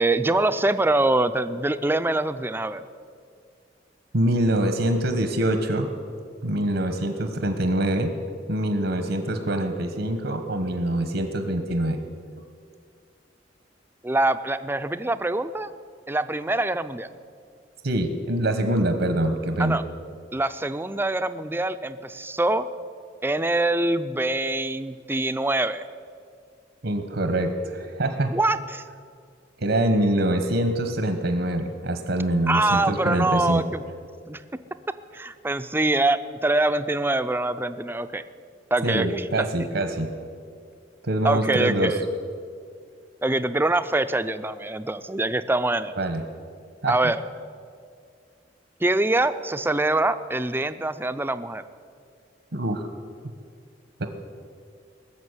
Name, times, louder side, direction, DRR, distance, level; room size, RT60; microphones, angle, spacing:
voice 1, 0.0-2.8 14.0-15.7 16.1-17.1 19.6-19.8 20.3-22.6 23.2-25.8 28.3-28.8 32.5-33.8 34.3-34.4 35.1-38.2 38.7-39.5 41.2-42.0 43.2-46.0 46.9-47.2 48.8-51.6, right 2 dB, 10° right, 12 dB, 0.5 m, -24 dB
voice 2, 4.1-5.9 6.4-8.1 8.5-12.0 17.8-19.8 26.8-28.3 29.6-33.6 38.8-40.1 41.0-41.9 46.0-46.2 46.8-47.0 52.5-52.9 54.0-54.1, right 1 dB, 75° right, 7 dB, 1.2 m, -24 dB
19.0 x 7.1 x 9.7 m, 2.2 s
head